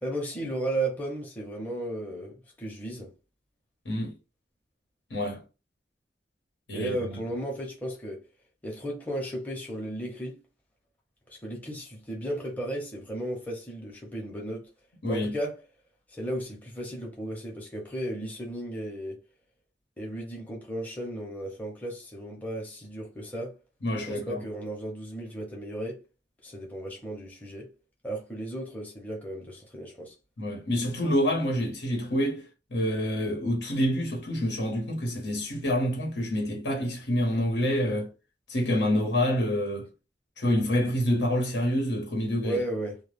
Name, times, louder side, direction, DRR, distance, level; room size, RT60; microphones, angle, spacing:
voice 1, 0.0-3.1 6.7-8.2 8.6-10.4 11.3-14.7 15.1-15.6 16.1-19.2 20.0-23.6 24.1-26.0 26.4-27.7 28.0-30.1 42.4-43.0, right 1 dB, 10° left, 0.6 m, -35 dB
voice 2, 5.1-5.4 6.7-7.2 15.0-15.3 23.8-24.4 30.4-32.4 32.7-38.1 38.5-39.9 40.4-42.6, equal, 85° left, 1.1 m, -27 dB
2.2 x 2.2 x 3.2 m
head